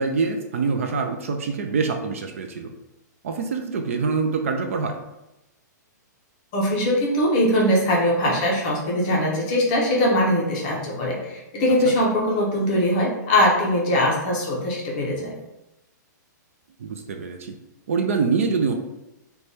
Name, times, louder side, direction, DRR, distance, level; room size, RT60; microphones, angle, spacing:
voice 1, 0.0-2.7 3.2-5.0 11.9-12.0 16.8-17.5 17.9-18.7, right 5 dB, 45° right, 4 dB, 0.3 m, -25 dB
voice 2, 6.5-15.3, left 1 dB, 20° left, -3 dB, 0.6 m, -21 dB
3.2 x 2.2 x 4.1 m, 0.94 s
hypercardioid pair, 180°, 10 cm